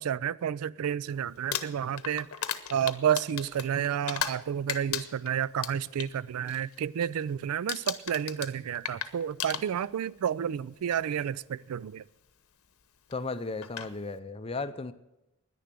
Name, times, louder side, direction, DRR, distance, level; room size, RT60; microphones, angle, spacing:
voice 1, 0.0-2.3 2.7-12.0, right 9 dB, 80° right, 0.3 m, -30 dB
Crumpling crinkling, 1.3-4.4 4.7-6.1 6.5-6.8 7.1-7.4 7.7-10.1 11.0-11.1 13.1-13.2 13.6-13.9, left 9 dB, 75° left, 0.9 m, -35 dB
voice 2, 13.1-14.9, left 3 dB, 25° left, 0.5 m, -35 dB
10.5 x 10.0 x 7.5 m
head